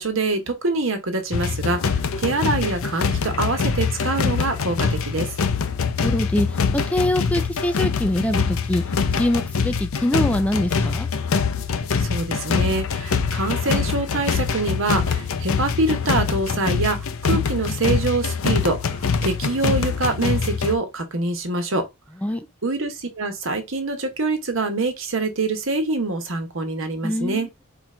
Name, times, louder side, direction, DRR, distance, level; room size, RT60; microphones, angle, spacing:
voice 1, 0.0-5.3 12.0-21.9 22.6-27.5, right 3 dB, 70° right, 1.2 m, -25 dB
sound 1, 1.3-20.8, left 5 dB, 80° left, 0.6 m, -24 dB
voice 2, 6.0-11.1 22.2-22.5 27.0-27.6, left 1 dB, 5° left, 0.3 m, -24 dB
4.3 x 2.5 x 4.3 m
head